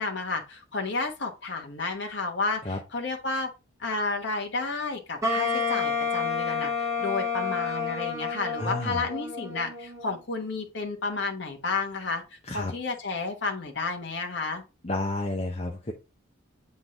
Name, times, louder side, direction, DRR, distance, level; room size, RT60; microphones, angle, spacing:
voice 1, 0.0-3.5 3.8-14.6, left 3 dB, 65° left, 1.1 m, -31 dB
Wind instrument woodwind instrument, 5.2-10.2, left 4 dB, 15° right, 1.8 m, -29 dB
voice 2, 8.6-9.1 12.4-12.7 14.8-15.9, left 2 dB, 30° left, 0.8 m, -31 dB
7.7 x 3.8 x 3.6 m
head